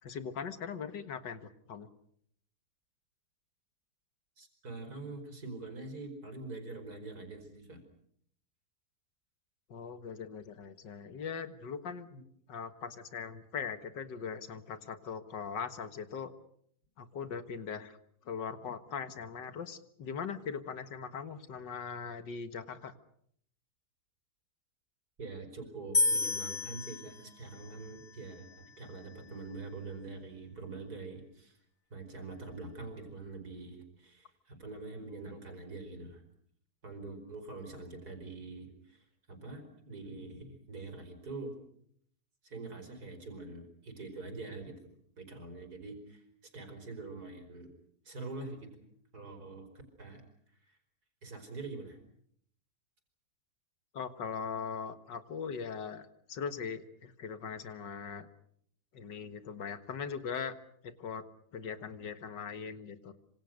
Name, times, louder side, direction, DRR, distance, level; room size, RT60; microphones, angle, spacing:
voice 1, 0.0-1.9 9.7-12.1 12.5-16.3 17.0-18.0 18.3-22.9 53.9-58.3 58.9-60.6 60.8-61.3 61.5-63.1, left 6 dB, 85° left, 10 dB, 2.2 m, -40 dB
voice 2, 4.4-7.8 12.1-12.2 25.2-31.6 31.9-36.2 36.8-41.5 42.4-44.7 45.2-47.7 48.1-48.7 49.1-49.7 50.0-50.2 50.6-50.8 51.2-52.0, right 3 dB, 60° right, 6 dB, 5.4 m, -44 dB
sound 1, 25.9-29.2, left 2 dB, 30° left, 1.8 m, -33 dB
26.0 x 26.0 x 6.6 m, 0.67 s
omnidirectional pair, 1.9 m